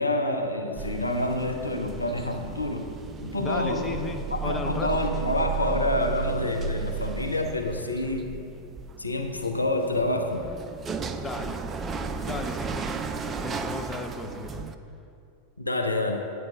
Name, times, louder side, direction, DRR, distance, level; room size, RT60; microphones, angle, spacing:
voice 1, 0.0-3.0 3.2-4.0 4.3-8.4 9.0-10.5 15.6-16.2, left 1 dB, 85° left, 4 dB, 0.6 m, -27 dB
sound 1, 0.8-14.7, right 5 dB, 20° right, 0.4 m, -34 dB
voice 2, 3.4-5.1 11.2-11.7 12.2-13.0 13.3-14.7, left 3 dB, 15° left, 5 dB, 0.6 m, -35 dB
9.0 x 4.7 x 6.1 m, 2.5 s
figure-of-eight pair, 90°, 0 cm